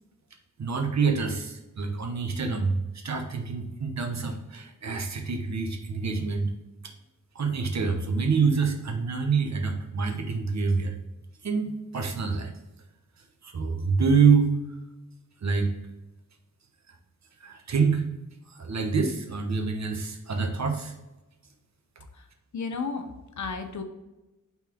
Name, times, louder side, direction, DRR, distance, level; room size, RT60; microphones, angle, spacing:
voice 1, 0.6-2.8 3.0-6.5 7.3-11.0 11.4-12.5 13.4-14.6 15.4-15.7 16.9-17.0 17.4-18.1 18.5-20.9, right 5 dB, 60° right, 4 dB, 1.0 m, -26 dB
voice 2, 22.5-23.8, left 4 dB, 65° left, 7 dB, 0.8 m, -33 dB
5.4 x 4.1 x 4.4 m, 1.0 s
wide cardioid pair, 130°, 32 cm